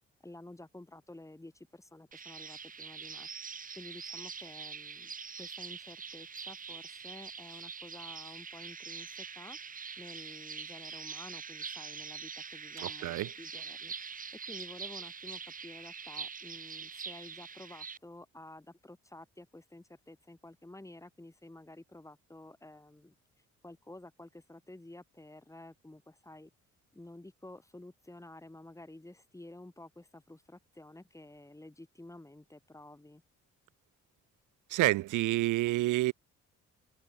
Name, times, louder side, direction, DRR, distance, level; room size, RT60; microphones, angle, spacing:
voice 1, 0.2-3.3 3.8-9.6 10.0-14.1 14.5-23.1 23.6-26.5 26.9-33.2, left 1 dB, 10° left, 4.4 m, -51 dB
sound 1, 2.1-18.0, right 6 dB, 25° right, 0.8 m, -44 dB
voice 2, 12.8-13.3 34.7-36.1, right 17 dB, 90° right, 1.1 m, -28 dB
cardioid pair, 90°, 30 cm